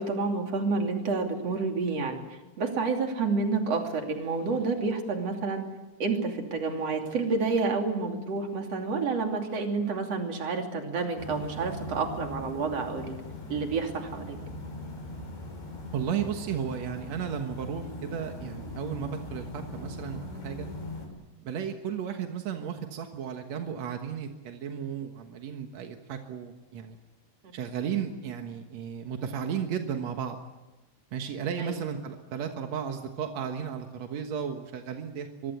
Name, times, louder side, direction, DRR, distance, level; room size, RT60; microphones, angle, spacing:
voice 1, 0.0-2.2 2.6-5.7 6.0-13.2 13.5-14.4 31.6-31.8, right 4 dB, 40° right, 3 dB, 3.5 m, -29 dB
sound 1, 11.2-21.1, left 1 dB, 85° left, 7.7 m, -40 dB
voice 2, 15.9-20.7 21.4-27.0 27.5-30.4 31.1-35.5, right 8 dB, 65° right, 5 dB, 1.8 m, -34 dB
25.0 x 22.5 x 8.1 m, 1.1 s
omnidirectional pair, 5.0 m